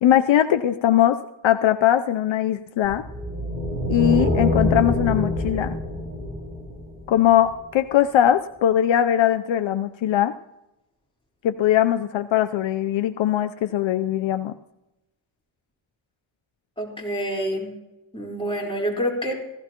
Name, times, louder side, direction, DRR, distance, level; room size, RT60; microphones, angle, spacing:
voice 1, 0.0-1.2 1.4-3.0 3.9-5.8 7.1-10.3 11.4-14.5, left 11 dB, 70° left, 8 dB, 0.6 m, -20 dB
sound 1, 2.8-7.3, left 1 dB, 20° right, 5.7 m, -25 dB
voice 2, 16.8-17.7 18.1-19.3, equal, 10° left, -3 dB, 4.0 m, -27 dB
16.0 x 15.0 x 2.9 m, 0.92 s
cardioid pair, 105°, 48 cm